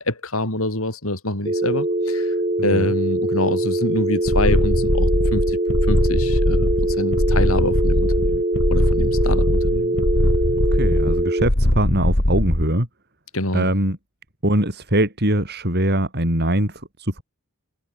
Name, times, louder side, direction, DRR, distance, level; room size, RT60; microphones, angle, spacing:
voice 1, 0.0-2.3 2.6-5.6 5.9-8.4 8.7-10.0 13.3-13.7, left 2 dB, 70° left, 6.2 m, -26 dB
sound 1, 1.4-11.5, right 1 dB, 30° right, 2.7 m, -23 dB
voice 2, 2.6-2.9 10.7-12.9 13.5-14.0 14.4-17.2, right 1 dB, 50° right, 7.0 m, -22 dB
sound 2, 4.3-12.7, left 1 dB, 55° left, 2.6 m, -20 dB
head